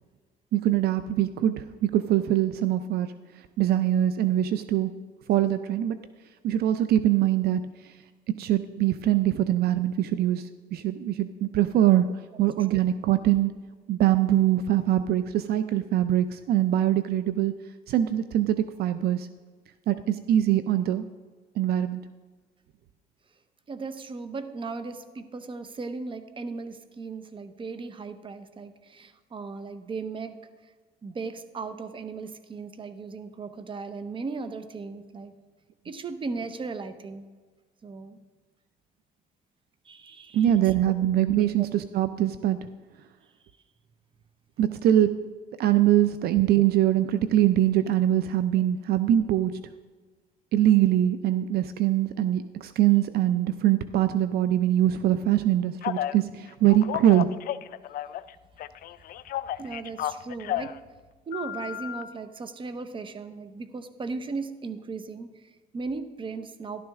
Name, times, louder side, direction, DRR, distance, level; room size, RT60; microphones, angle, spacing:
voice 1, 0.5-3.1 3.6-4.9 5.3-6.0 6.4-7.6 8.3-12.0 12.4-13.5 13.9-17.5 17.9-19.3 19.9-21.0 21.6-22.0 40.3-42.6 44.6-45.1 45.6-49.6 50.5-57.3, right 12 dB, 70° right, 12 dB, 0.5 m, -23 dB
voice 2, 23.7-30.4 31.0-35.3 35.8-37.3 37.8-38.2 39.8-40.7 41.4-41.7 59.6-60.7 61.3-66.8, right 4 dB, 30° right, 10 dB, 0.9 m, -37 dB
Telephone, 55.8-56.2 56.7-58.3 58.6-60.8 61.3-62.0, left 12 dB, 60° left, 0.4 m, -32 dB
13.0 x 12.0 x 3.6 m, 1.4 s
cardioid pair, 110°, 17 cm